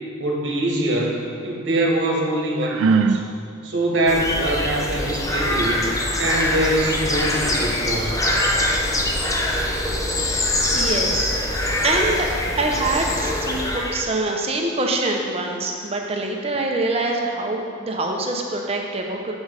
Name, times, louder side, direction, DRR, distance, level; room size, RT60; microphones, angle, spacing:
voice 1, 0.2-3.2 3.6-5.9 6.2-8.5, right 1 dB, 60° right, 0 dB, 1.3 m, -23 dB
Sigh, 2.6-3.3, right 5 dB, 80° right, 0.3 m, -19 dB
sound 1, 4.1-14.0, left 1 dB, 15° left, 0.5 m, -23 dB
voice 2, 10.7-11.4 11.8-19.3, right 2 dB, 30° right, 1 dB, 0.7 m, -24 dB
7.2 x 6.2 x 4.9 m, 2.2 s
head